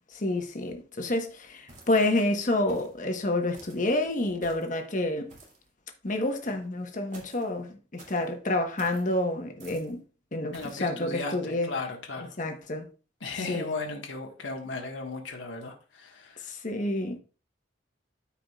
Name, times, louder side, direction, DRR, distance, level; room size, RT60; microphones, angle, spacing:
voice 1, 0.0-5.3 6.0-10.0 10.3-11.7 12.4-12.8 13.4-13.7 16.4-17.2, left 1 dB, 45° left, 1.2 m, -29 dB
sound 1, 1.7-2.2 2.7-3.0 3.5-3.9 4.4-4.8 5.3-5.7 7.1-7.5 8.0-8.3 8.8-9.1 9.6-9.9 10.5-10.8, right 2 dB, 40° right, 2.4 m, -51 dB
voice 2, 10.5-12.4 13.2-16.5, left 3 dB, 85° left, 1.6 m, -36 dB
13.0 x 4.9 x 2.4 m
head